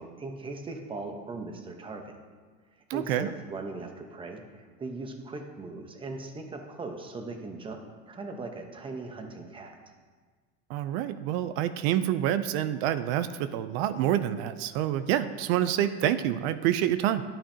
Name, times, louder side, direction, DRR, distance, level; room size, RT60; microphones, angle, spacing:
voice 1, 0.0-2.2 2.9-9.8, right 3 dB, 15° right, 4 dB, 0.9 m, -39 dB
voice 2, 2.9-3.3 10.7-17.2, right 11 dB, 75° right, 12 dB, 0.6 m, -27 dB
11.0 x 8.9 x 2.8 m, 1.5 s
cardioid pair, 145°, 32 cm